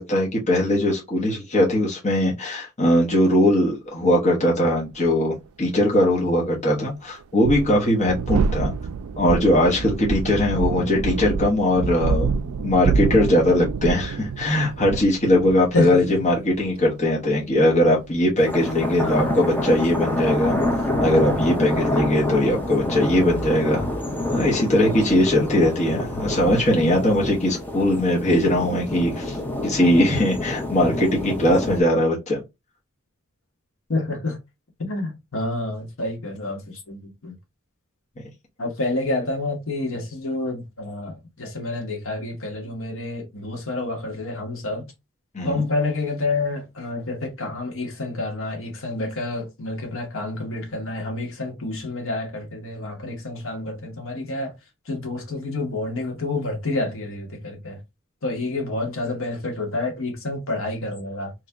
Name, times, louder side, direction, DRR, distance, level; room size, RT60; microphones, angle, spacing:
voice 1, 0.0-8.7 9.2-12.4 12.6-20.6 21.0-23.9 24.3-29.4 29.6-32.4 45.3-45.6, left 1 dB, 30° left, 1.1 m, -20 dB
sound 1, 5.0-5.1 7.2-22.8, right 5 dB, 70° right, 0.4 m, -28 dB
voice 2, 10.5-11.1 15.7-16.0 19.0-19.5 33.9-34.4 34.8-37.3 38.6-44.9 45.4-54.5 54.8-57.8 58.2-61.3, left 2 dB, 65° left, 1.3 m, -28 dB
sound 2, 18.4-31.8, left 1 dB, 10° left, 0.7 m, -27 dB
3.1 x 2.8 x 3.4 m
head